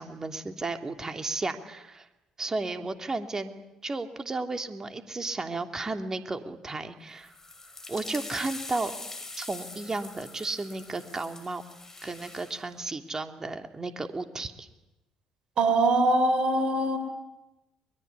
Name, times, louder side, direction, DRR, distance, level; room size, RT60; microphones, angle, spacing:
voice 1, 0.0-2.1 2.4-7.3 7.9-8.9 9.4-11.6 12.0-14.7, right 3 dB, 25° right, 6 dB, 3.1 m, -33 dB
sound 1, 7.2-12.6, left 2 dB, 20° left, 5.1 m, -43 dB
voice 2, 15.6-17.0, right 2 dB, 50° right, 9 dB, 3.9 m, -23 dB
23.0 x 22.0 x 9.7 m, 0.97 s
figure-of-eight pair, 50°, 2 cm